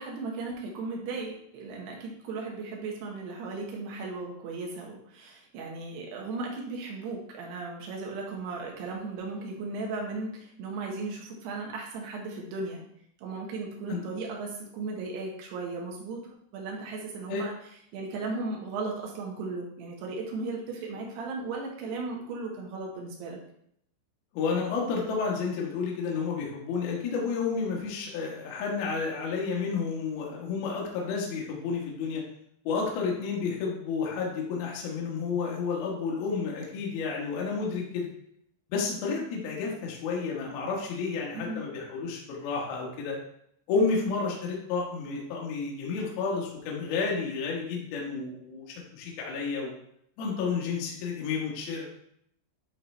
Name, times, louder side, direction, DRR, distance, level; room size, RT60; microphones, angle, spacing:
voice 1, 0.0-12.8 13.2-16.2 16.5-17.6 17.9-23.4 41.3-41.6, right 3 dB, 70° right, -1 dB, 3.1 m, -36 dB
voice 2, 24.3-32.2 32.6-38.1 38.7-43.2 43.7-48.6 48.9-49.7 50.2-51.9, left 5 dB, 65° left, -2 dB, 2.8 m, -31 dB
11.0 x 3.8 x 3.2 m, 0.71 s
omnidirectional pair, 5.5 m